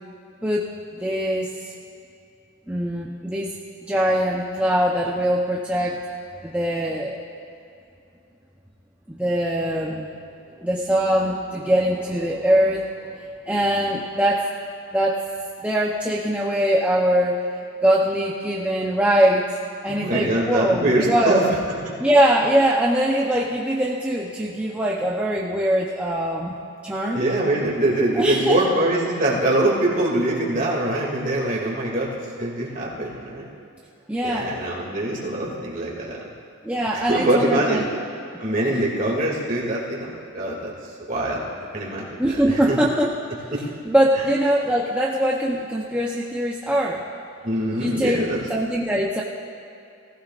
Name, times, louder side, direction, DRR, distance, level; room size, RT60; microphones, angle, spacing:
voice 1, 1.0-1.7 2.7-3.5 3.8-6.0 6.4-7.2 9.1-10.1 10.6-12.8 13.5-14.4 14.9-15.2 15.6-17.5 17.8-19.4 19.8-21.4 22.0-26.5 26.8-27.3 28.1-28.6 34.1-34.5 36.6-38.1 42.2-43.1 43.8-47.0 47.7-49.2, equal, 5° right, -5 dB, 0.7 m, -22 dB
voice 2, 19.9-21.5 21.9-22.0 27.1-33.5 34.2-36.3 36.9-37.9 38.4-40.7 41.1-42.8 43.5-43.6 47.4-48.4, right 1 dB, 40° right, -4 dB, 2.4 m, -23 dB
19.0 x 15.5 x 2.5 m, 2.6 s
head